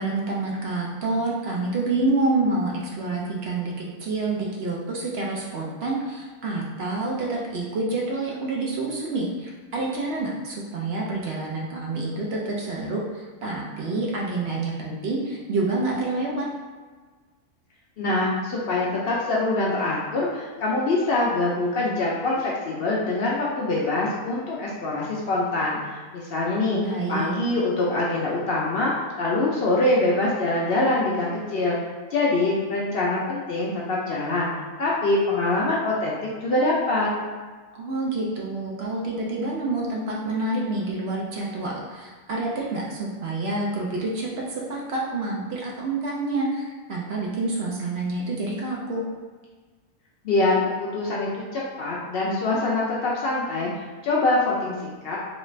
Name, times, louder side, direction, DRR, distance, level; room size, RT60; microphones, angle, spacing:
voice 1, 0.0-16.5 26.8-27.4 37.7-49.0, right 2 dB, 60° right, -3 dB, 0.7 m, -28 dB
voice 2, 18.0-26.8 27.1-31.8 32.1-34.5 34.8-37.1 50.2-55.2, left 2 dB, 65° left, -5 dB, 0.6 m, -24 dB
3.1 x 2.4 x 3.1 m, 1.4 s
omnidirectional pair, 1.4 m